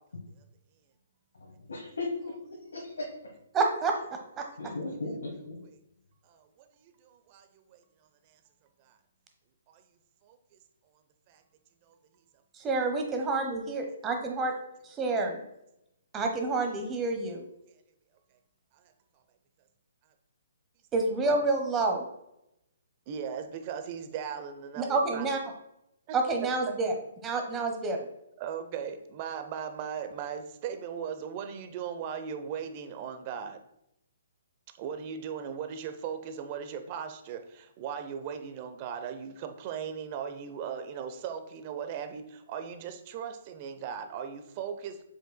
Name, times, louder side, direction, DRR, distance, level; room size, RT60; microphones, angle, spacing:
voice 1, 1.7-2.3 2.7-3.1 4.6-5.6, left 2 dB, 75° left, -2 dB, 1.4 m, -36 dB
voice 2, 3.5-3.9 12.6-14.5 14.8-15.4 16.1-17.4 20.9-22.0 24.8-25.4 26.1-26.9 27.2-28.1, right 3 dB, 20° right, 3 dB, 1.1 m, -28 dB
voice 3, 6.2-7.8 8.8-9.0 9.7-9.8 10.2-10.6 11.3-11.4 11.9-12.0 21.2-21.4 23.1-25.3 26.1-26.2 28.4-33.6 34.8-45.0, right 7 dB, 35° right, 8 dB, 0.7 m, -38 dB
7.2 x 5.8 x 2.3 m, 0.82 s
figure-of-eight pair, 130°, 0 cm